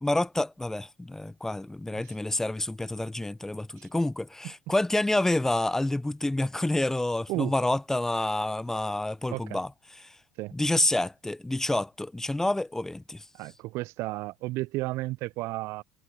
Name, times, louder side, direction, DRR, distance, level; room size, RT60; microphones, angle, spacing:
voice 1, 0.0-9.7 10.0-10.1 10.5-13.2, left 1 dB, 10° left, 0.6 m, -28 dB
voice 2, 13.3-15.8, right 20 dB, 60° right, 0.4 m, -33 dB
hypercardioid pair, 70°, 6 cm